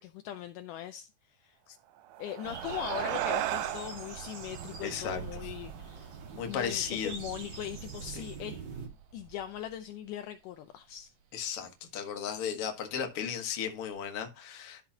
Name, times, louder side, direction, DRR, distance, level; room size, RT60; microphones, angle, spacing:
voice 1, 0.0-1.6 2.2-6.1 6.4-8.6 9.1-11.1, left 11 dB, 80° left, 1.8 m, -40 dB
sound 1, 2.0-6.7, right 13 dB, 85° right, 1.9 m, -37 dB
sound 2, 2.4-8.9, right 5 dB, 40° right, 1.9 m, -44 dB
sound 3, 4.0-14.0, right 6 dB, 65° right, 1.7 m, -51 dB
voice 2, 4.8-5.3 6.3-7.1 8.1-8.3 11.3-14.8, left 8 dB, 50° left, 1.8 m, -35 dB
12.5 x 5.8 x 2.8 m
omnidirectional pair, 4.4 m